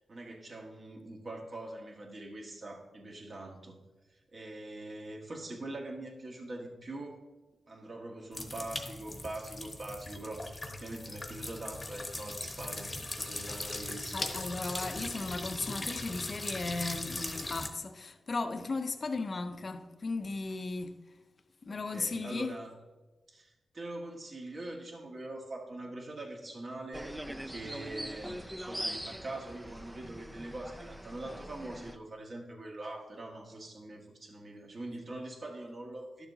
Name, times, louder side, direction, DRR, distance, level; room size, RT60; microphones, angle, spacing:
voice 1, 0.1-3.8 4.1-7.2 7.7-14.3 21.7-22.7 23.3-36.3, right 2 dB, 50° right, 1.6 m, -43 dB
sound 1, 8.3-17.7, left 2 dB, 30° left, 0.9 m, -39 dB
voice 2, 14.1-21.0 21.6-22.5, left 3 dB, 45° left, 0.6 m, -36 dB
sound 2, 26.9-32.0, equal, 5° right, 0.4 m, -42 dB
11.5 x 7.0 x 2.7 m
cardioid pair, 85°, 0 cm